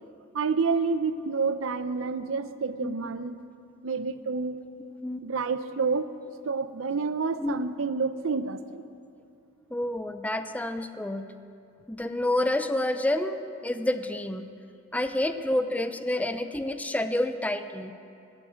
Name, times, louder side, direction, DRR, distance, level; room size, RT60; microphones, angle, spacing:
voice 1, 0.3-3.3 3.8-4.6 5.2-6.1 6.4-8.8, right 4 dB, 85° right, 12 dB, 0.6 m, -28 dB
voice 2, 2.8-3.1 5.0-5.2 7.4-7.6 9.7-11.3 11.9-14.5 14.9-17.9, left 1 dB, 10° left, 9 dB, 0.5 m, -29 dB
15.5 x 8.7 x 7.5 m, 2.5 s
head